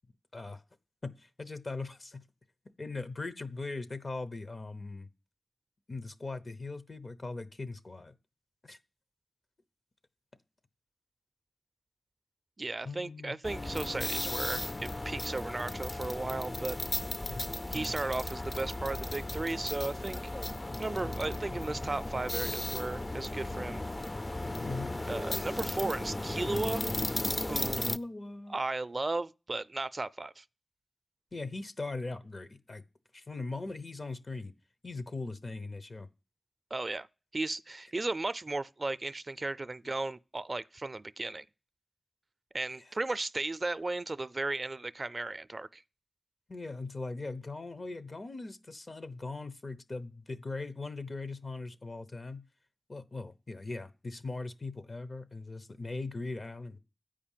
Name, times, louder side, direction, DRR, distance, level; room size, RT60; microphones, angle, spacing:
voice 1, 1.0-2.2 2.8-5.1 5.9-8.1 8.6-8.8 12.8-13.4 17.2-17.9 24.6-24.9 27.8-28.6 31.3-32.8 33.1-34.5 34.8-36.1 46.5-52.4 52.9-56.8, left 3 dB, 60° left, 0.8 m, -40 dB
voice 2, 12.6-16.8 17.7-20.2 20.8-23.8 25.1-26.8 27.5-27.9 28.5-30.4 36.7-37.1 37.3-41.4 42.5-45.8, right 2 dB, 50° right, 0.4 m, -35 dB
sound 1, 13.4-28.0, left 1 dB, 35° left, 0.4 m, -35 dB
8.6 x 5.1 x 7.3 m
cardioid pair, 40°, 0 cm